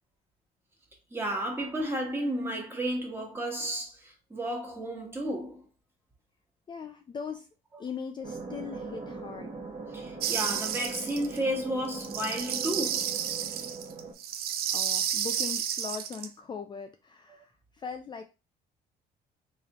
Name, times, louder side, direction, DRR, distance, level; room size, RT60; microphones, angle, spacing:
voice 1, 1.1-5.6 9.9-13.1, right 1 dB, 15° right, 1.4 m, -32 dB
voice 2, 6.7-7.5 7.8-9.5 14.7-18.2, left 6 dB, 25° left, 0.4 m, -40 dB
sound 1, 8.2-14.1, right 4 dB, 35° right, 1.1 m, -40 dB
sound 2, 10.2-11.4 11.9-16.3, right 9 dB, 65° right, 0.4 m, -31 dB
3.5 x 3.2 x 2.9 m
cardioid pair, 110°, 17 cm